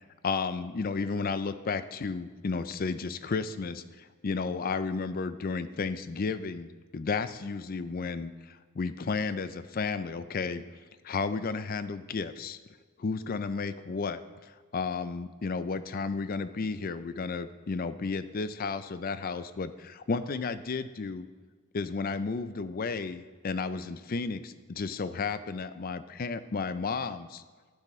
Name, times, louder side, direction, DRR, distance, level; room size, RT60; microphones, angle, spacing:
voice 1, 0.0-10.6 11.0-12.6 13.0-21.3 21.7-27.4, left 4 dB, 45° left, 13 dB, 0.4 m, -33 dB
12.0 x 9.1 x 3.1 m, 1.5 s
head